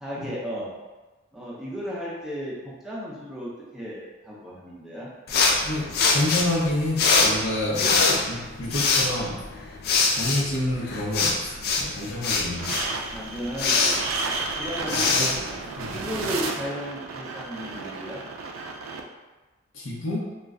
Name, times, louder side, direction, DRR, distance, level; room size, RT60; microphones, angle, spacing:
voice 1, 0.0-0.7 1.3-5.1 13.1-14.0 14.6-15.4 15.9-18.2, equal, ahead, -7 dB, 0.5 m, -34 dB
sound 1, 5.3-16.2, left 4 dB, 50° left, 0.3 m, -24 dB
voice 2, 5.6-9.3 10.1-12.9 14.9-15.3 15.8-15.9 19.7-20.2, left 1 dB, 85° left, -4 dB, 0.7 m, -29 dB
sound 2, 12.5-19.0, right 3 dB, 90° right, 0.3 m, -32 dB
2.3 x 2.1 x 3.5 m, 1.2 s
head